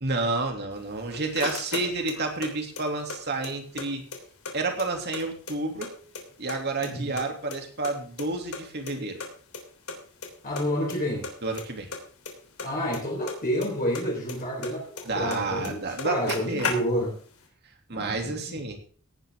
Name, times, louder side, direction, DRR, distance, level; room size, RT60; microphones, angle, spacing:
voice 1, 0.0-4.1 4.5-5.9 6.4-9.2 11.4-11.9 15.1-16.7 17.9-18.8, right 3 dB, 50° right, 3 dB, 2.8 m, -30 dB
sound 1, 0.8-2.5 2.8-3.9 4.1-4.2 4.5-5.9 6.1-6.9 7.2-8.6 8.9-9.0 9.2-9.3 9.5-9.6 9.9-10.3 10.6-11.0 11.2-13.7 13.9-15.4 15.6-15.7 16.0-17.2, left 4 dB, 80° left, 3.4 m, -35 dB
voice 2, 6.8-7.1 10.4-11.3 12.6-15.8 16.0-17.1 17.9-18.4, equal, 40° left, -3 dB, 4.4 m, -29 dB
17.5 x 10.0 x 3.7 m, 0.42 s
head